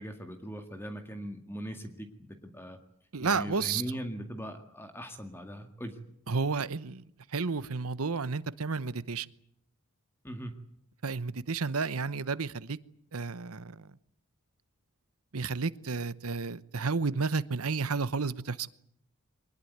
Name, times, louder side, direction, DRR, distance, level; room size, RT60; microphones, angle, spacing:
voice 1, 0.0-2.8 3.2-6.0 10.2-10.6, equal, 10° left, 1.9 m, -40 dB
voice 2, 3.1-3.8 6.3-7.0 7.3-9.3 11.0-12.8 13.1-13.9 15.3-18.7, right 4 dB, 85° right, 1.0 m, -31 dB
23.0 x 20.5 x 9.5 m
head